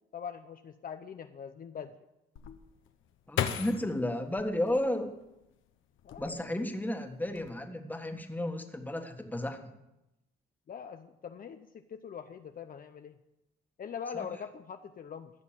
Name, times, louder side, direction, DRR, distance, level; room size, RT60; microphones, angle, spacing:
voice 1, 0.1-2.0 6.0-6.5 10.7-13.2 13.8-15.3, left 7 dB, 45° left, 7 dB, 0.7 m, -42 dB
sound 1, 2.4-5.4 6.0-6.7 7.0-7.5, left 9 dB, 80° left, 1.1 m, -37 dB
voice 2, 3.3-5.1 6.2-9.7 14.1-14.3, left 1 dB, 10° left, 5 dB, 1.6 m, -33 dB
15.0 x 6.4 x 7.5 m, 0.92 s
cardioid pair, 90°, 20 cm